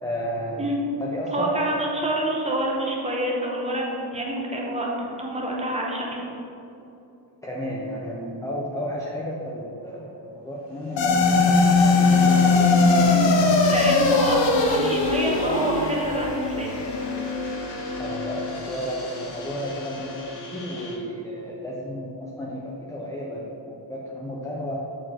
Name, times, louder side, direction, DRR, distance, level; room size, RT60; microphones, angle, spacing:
voice 1, 0.0-0.7 1.0-1.5 7.4-13.6 18.0-24.8, equal, 10° left, -4 dB, 0.5 m, -33 dB
voice 2, 1.3-6.2 13.1-16.7, right 1 dB, 15° right, -2 dB, 1.0 m, -27 dB
sound 1, 10.7-20.9, left 3 dB, 70° left, 1.3 m, -41 dB
sound 2, 11.0-19.5, left 3 dB, 85° left, 0.8 m, -21 dB
6.7 x 4.3 x 4.4 m, 2.9 s
cardioid pair, 135°, 44 cm